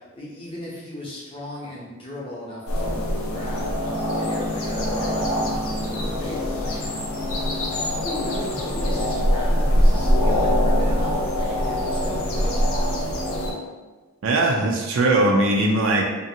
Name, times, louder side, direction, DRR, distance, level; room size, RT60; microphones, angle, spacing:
voice 1, 0.0-3.8 4.1-6.9 7.2-7.3 7.7-13.0, left 1 dB, 25° left, -6 dB, 0.7 m, -37 dB
sound 1, 2.7-13.5, equal, 75° left, 0.5 m, -23 dB
voice 2, 14.2-16.1, right 2 dB, 60° right, 0 dB, 0.4 m, -20 dB
2.6 x 2.5 x 2.7 m, 1.3 s
head